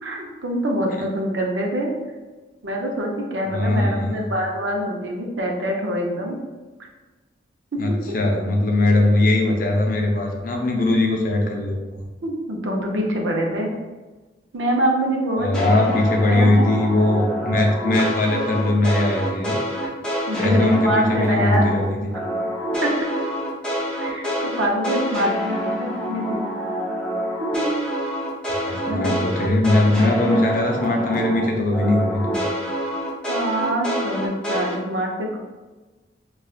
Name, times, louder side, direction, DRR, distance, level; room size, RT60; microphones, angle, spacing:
voice 1, 0.0-1.9 2.6-6.4 7.7-7.8 12.2-13.7 14.5-16.7 18.0-18.2 20.3-21.6 22.8-22.9 24.0-26.5 27.4-27.7 28.9-29.2 33.3-35.4, right 1 dB, 85° right, 0 dB, 0.6 m, -25 dB
voice 2, 3.5-4.3 7.8-12.0 15.4-19.6 20.4-22.1 28.5-32.4, left 2 dB, 50° left, 1 dB, 0.5 m, -20 dB
sound 1, 15.5-21.8 22.1-31.4 31.7-34.7, equal, 5° left, 0.6 m, -27 dB
4.3 x 2.4 x 2.4 m, 1.2 s
head